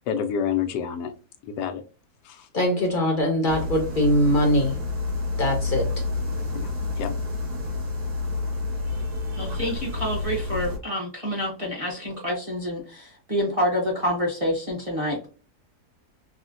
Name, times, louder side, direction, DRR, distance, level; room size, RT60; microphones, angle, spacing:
voice 1, 0.1-1.1 1.5-1.8 2.2-2.5 6.5-7.2, left 8 dB, 90° left, 8 dB, 1.2 m, -28 dB
voice 2, 2.5-4.8 5.4-5.9, equal, 50° left, 2 dB, 0.6 m, -22 dB
sound 1, 3.5-10.8, left 3 dB, 70° right, 1.7 m, -29 dB
voice 3, 9.4-15.3, equal, 25° right, -3 dB, 0.8 m, -27 dB
3.7 x 2.1 x 2.5 m, 0.35 s
omnidirectional pair, 1.7 m